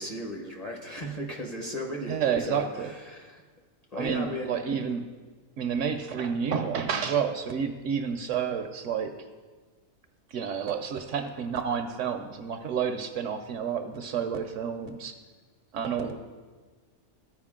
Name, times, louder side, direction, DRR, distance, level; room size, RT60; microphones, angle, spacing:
voice 1, 0.0-3.4 3.9-4.6, equal, 35° left, 0 dB, 0.7 m, -36 dB
voice 2, 2.1-2.9 3.9-5.1 5.6-9.1 10.3-15.2 15.7-16.2, right 7 dB, 70° right, 7 dB, 0.8 m, -30 dB
14.0 x 4.7 x 3.7 m, 1.4 s
omnidirectional pair, 1.5 m